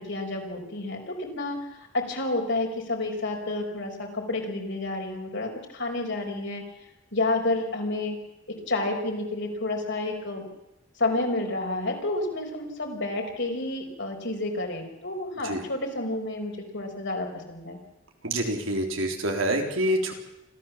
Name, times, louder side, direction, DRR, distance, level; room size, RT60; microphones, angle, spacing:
voice 1, 0.0-6.6 7.1-8.2 8.5-10.5 11.0-17.8, left 2 dB, 60° left, 2 dB, 4.9 m, -30 dB
voice 2, 18.2-20.1, right 1 dB, 80° right, 3 dB, 3.7 m, -26 dB
26.0 x 15.0 x 7.4 m, 0.95 s
head